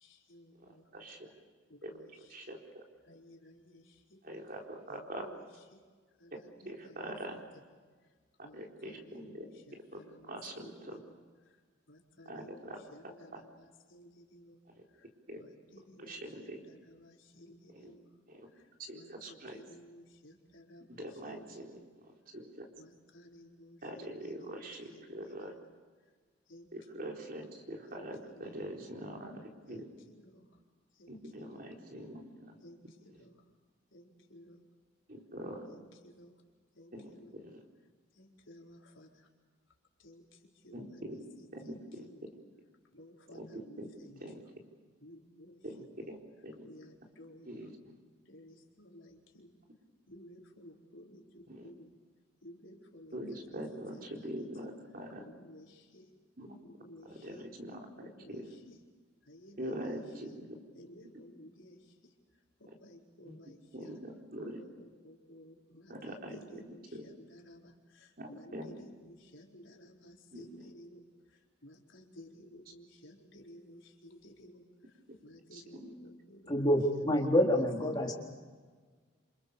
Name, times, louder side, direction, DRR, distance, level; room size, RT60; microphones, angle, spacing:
voice 1, 0.0-0.8 1.7-2.3 3.1-3.8 4.1-4.2 4.9-5.4 6.2-7.4 8.4-11.1 11.9-14.6 15.4-18.0 18.9-21.8 22.8-25.6 26.5-26.7 26.9-27.3 27.9-28.6 29.7-30.4 31.0-31.7 32.6-33.3 33.9-34.6 35.7-36.3 36.8-37.4 38.2-39.1 40.0-40.2 40.6-42.2 42.9-44.2 45.0-45.6 46.0-46.1 46.6-47.6 48.3-49.5 50.1-51.9 52.4-53.5 53.9-54.5 55.2-56.0 56.6-57.5 57.9-58.8 59.3-60.4 60.8-61.8 62.6-63.9 64.4-67.7 68.3-71.0 71.6-74.6 75.2-77.3 77.9-78.1, left 1 dB, 75° left, 0 dB, 4.4 m, -55 dB
voice 2, 4.3-5.3 6.7-7.4 8.5-9.3 10.3-11.0 12.3-12.8 13.3-13.4 15.3-15.4 16.0-16.6 18.9-19.6 21.0-21.6 22.3-22.7 23.8-25.5 26.7-29.3 29.7-29.8 31.1-32.2 35.1-35.6 36.9-37.0 40.7-41.2 41.5-42.1 43.3-43.9 44.2-44.4 45.6-45.8 46.1-46.2 46.4-46.6 47.5-47.7 51.5-51.6 53.1-55.2 56.4-56.6 57.2-57.9 58.3-58.5 59.6-60.5 63.3-63.4 63.7-64.6 65.9-67.0 68.2-68.7 70.3-70.4 75.5-75.9, right 1 dB, 45° right, 1 dB, 4.1 m, -43 dB
voice 3, 76.5-78.1, equal, 20° left, -1 dB, 4.0 m, -27 dB
28.0 x 28.0 x 7.0 m, 1.5 s
head